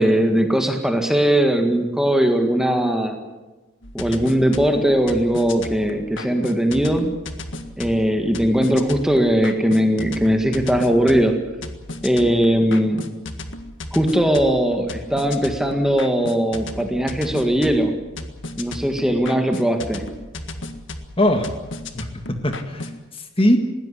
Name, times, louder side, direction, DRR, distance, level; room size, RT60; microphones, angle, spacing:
voice 1, 0.0-3.2 3.9-7.1 7.8-11.3 12.0-13.0 13.9-17.9 18.6-20.0, equal, ahead, 4 dB, 1.8 m, -19 dB
sound 1, 3.8-23.0, left 2 dB, 60° left, 1.8 m, -35 dB
voice 2, 21.2-21.5 21.9-23.6, left 1 dB, 25° left, 6 dB, 1.8 m, -21 dB
20.5 x 16.5 x 9.9 m, 1.1 s
head